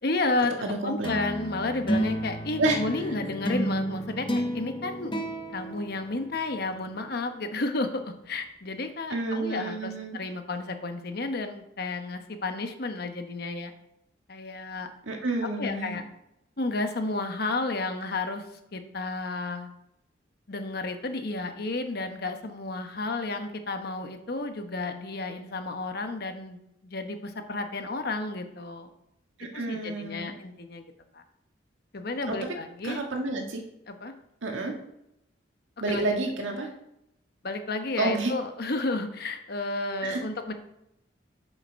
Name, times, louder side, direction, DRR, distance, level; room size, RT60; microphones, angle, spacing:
voice 1, 0.0-0.5 0.8-5.1 5.5-13.7 14.3-14.9 15.6-16.0 16.6-18.4 18.7-19.7 20.5-28.9 29.5-30.8 31.1-31.2 31.9-33.0 33.9-34.1 35.9-36.1 37.4-40.5, left 2 dB, 55° left, 7 dB, 1.0 m, -32 dB
voice 2, 0.6-1.1 2.6-2.8 9.1-10.2 15.1-16.0 29.4-30.3 32.3-32.4 32.8-33.6 34.4-34.7 35.8-36.7 38.0-38.3 40.0-40.2, right 2 dB, 85° right, 2 dB, 1.8 m, -29 dB
sound 1, 1.0-6.6, right 1 dB, 25° left, 1.0 m, -31 dB
7.8 x 7.4 x 4.6 m, 0.83 s
head